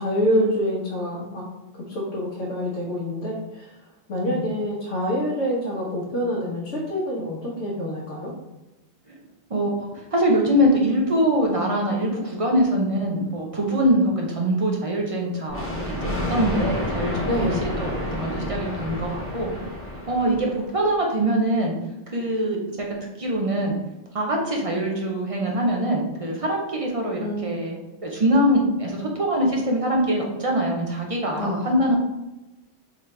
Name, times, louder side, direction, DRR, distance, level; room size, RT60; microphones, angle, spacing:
voice 1, 0.0-1.4 1.7-3.7 4.1-8.3 17.2-17.6 27.2-27.6 31.4-31.6, equal, 80° left, -5 dB, 1.2 m, -26 dB
voice 2, 9.9-17.3 17.8-19.6 20.1-21.8 22.1-22.9 23.2-23.8 24.1-27.8 28.0-32.0, right 1 dB, 40° right, -1 dB, 0.5 m, -23 dB
Thunder, 15.5-20.8, left 1 dB, 15° left, 0.9 m, -29 dB
4.1 x 2.8 x 3.2 m, 1.0 s
omnidirectional pair, 1.2 m